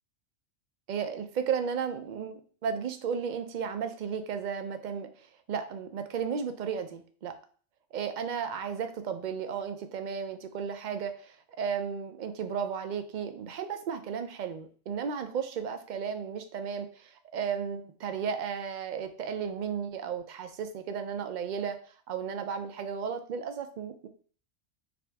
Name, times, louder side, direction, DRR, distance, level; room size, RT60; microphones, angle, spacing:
voice 1, 0.9-7.3 7.9-21.8 22.1-24.1, right 7 dB, 55° right, 8 dB, 0.5 m, -34 dB
5.0 x 2.6 x 3.3 m, 0.43 s
omnidirectional pair, 1.2 m